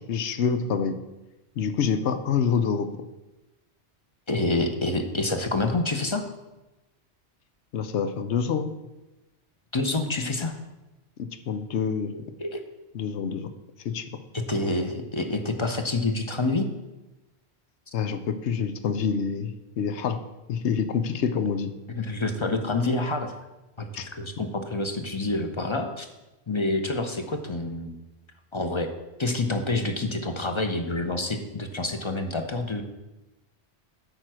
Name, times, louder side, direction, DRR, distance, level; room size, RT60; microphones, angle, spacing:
voice 1, 0.1-1.0 1.6-2.9 7.7-8.7 11.2-12.1 12.9-13.5 13.8-14.0 17.9-20.2 20.5-21.7 24.0-24.1 24.4-24.5, left 6 dB, 85° left, 9 dB, 1.0 m, -26 dB
voice 2, 4.3-6.2 9.7-10.5 12.4-12.6 14.3-16.7 21.9-23.3 23.8-26.1 26.5-27.9 28.5-28.9 29.2-32.8, left 2 dB, 30° left, 6 dB, 0.7 m, -27 dB
9.0 x 4.5 x 6.2 m, 1.0 s
omnidirectional pair, 1.1 m